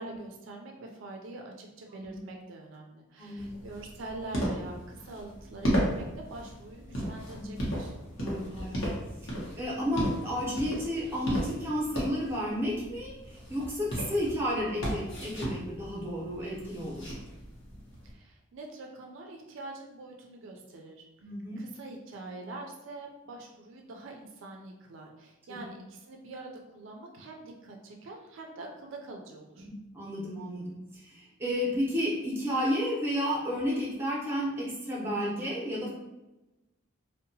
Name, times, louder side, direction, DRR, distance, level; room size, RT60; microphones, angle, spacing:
voice 1, 0.0-7.9 18.0-21.1 21.6-29.7, right 2 dB, 70° right, 1 dB, 0.4 m, -44 dB
voice 2, 3.2-3.5 7.3-7.5 8.2-8.9 9.2-17.2 21.2-21.6 25.5-25.7 29.6-35.9, equal, 10° right, -6 dB, 0.6 m, -32 dB
sound 1, 3.4-18.1, equal, 70° left, 0.8 m, -35 dB
2.7 x 2.1 x 2.7 m, 1.0 s
head